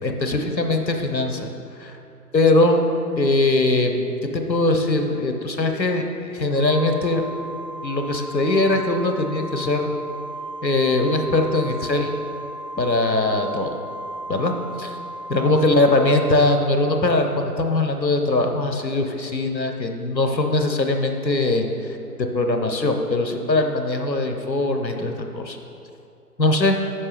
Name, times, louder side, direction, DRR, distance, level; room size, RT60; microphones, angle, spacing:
voice 1, 0.0-1.5 1.8-2.0 2.3-2.8 3.2-4.1 4.3-6.0 6.3-7.2 7.8-9.9 10.6-12.1 12.8-13.8 14.3-14.5 14.8-15.0 15.3-21.6 22.3-25.6 26.4-26.8, left 2 dB, 85° left, 4 dB, 1.1 m, -21 dB
Organ, 6.6-17.3, right 2 dB, 80° right, 2.0 m, -35 dB
14.0 x 5.7 x 3.4 m, 2.7 s
figure-of-eight pair, 140°, 50 cm